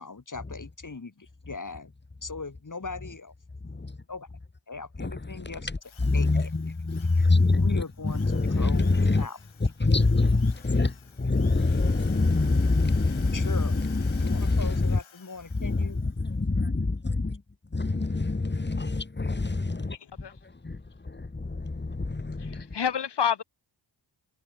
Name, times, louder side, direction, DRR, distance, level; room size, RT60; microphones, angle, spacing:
voice 1, 0.0-1.9 2.2-3.3 4.1-4.3 4.7-5.7 6.1-6.5 7.5-9.4 13.3-16.0, left 4 dB, 40° left, 6.6 m, -39 dB
Drill, 5.8-16.2, left 7 dB, 80° left, 6.4 m, -52 dB
voice 2, 6.0-9.3 9.8-15.0 15.6-17.4 17.7-20.0 20.6-20.8 21.1-22.7, left 3 dB, 25° left, 2.0 m, -25 dB
voice 3, 19.9-20.3 22.4-23.4, left 8 dB, 60° left, 1.4 m, -29 dB
cardioid pair, 60°, 46 cm